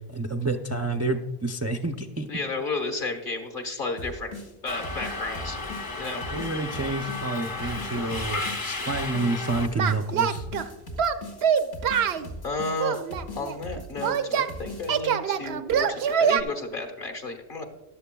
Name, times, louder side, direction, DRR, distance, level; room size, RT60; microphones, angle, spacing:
voice 1, 0.0-2.3 6.3-10.4, right 2 dB, 25° right, 3 dB, 0.3 m, -29 dB
voice 2, 2.3-4.3 4.6-5.6 6.0-6.2 12.0-12.2 12.4-13.0 13.3-17.6, left 3 dB, 55° left, 5 dB, 1.5 m, -32 dB
sound 1, 4.0-15.0, left 1 dB, 90° left, 2.0 m, -40 dB
Subway metro underground, 4.7-9.7, left 3 dB, 25° left, 0.6 m, -33 dB
Singing, 9.8-10.7 11.0-12.3 12.8-14.5 14.9-16.4, right 7 dB, 80° right, 0.9 m, -24 dB
14.0 x 11.5 x 2.3 m, 1.1 s
omnidirectional pair, 1.0 m